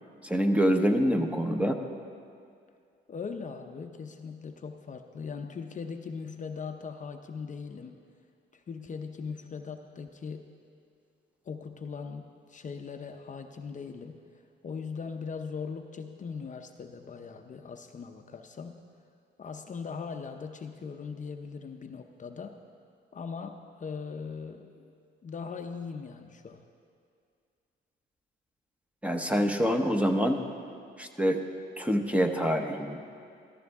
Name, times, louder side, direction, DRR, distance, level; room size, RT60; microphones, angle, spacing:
voice 1, 0.2-1.8 29.0-30.4 31.0-31.4 31.8-33.0, equal, 5° right, 4 dB, 1.0 m, -26 dB
voice 2, 3.1-7.9 8.5-10.5 11.4-14.2 14.6-18.8 19.4-22.6 23.1-24.9 25.2-26.6, left 5 dB, 40° left, 5 dB, 0.7 m, -40 dB
14.5 x 13.5 x 3.6 m, 2.3 s
cardioid pair, 90°, 20 cm